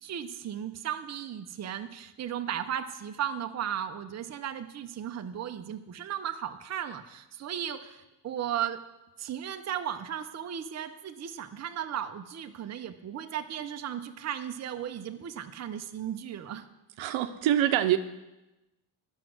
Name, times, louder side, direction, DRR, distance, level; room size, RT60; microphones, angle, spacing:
voice 1, 0.0-8.8 9.2-16.6, right 9 dB, 35° right, 7 dB, 0.6 m, -35 dB
voice 2, 17.0-18.0, right 12 dB, 75° right, 9 dB, 0.8 m, -25 dB
11.5 x 6.2 x 6.1 m, 1.0 s
cardioid pair, 125°, 48 cm